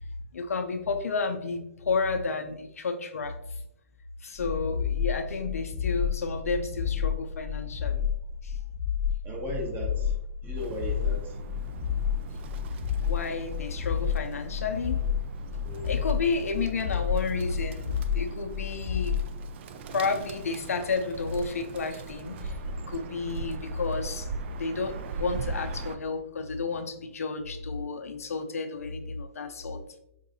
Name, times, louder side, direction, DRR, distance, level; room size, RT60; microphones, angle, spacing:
voice 1, 0.3-3.6 4.2-8.0 8.4-8.6 13.0-15.1 15.8-19.2 19.9-22.6 22.9-24.3 24.5-30.0, left 4 dB, 85° left, 6 dB, 0.5 m, -31 dB
sound 1, 4.4-19.3, left 8 dB, 20° left, 0.9 m, -30 dB
voice 2, 9.2-10.2 10.4-11.4 15.6-16.0, equal, 25° right, 1 dB, 0.9 m, -36 dB
Bird, 10.6-26.0, right 5 dB, 50° right, 0.3 m, -41 dB
4.8 x 2.6 x 2.6 m, 0.84 s
hypercardioid pair, 130°, 8 cm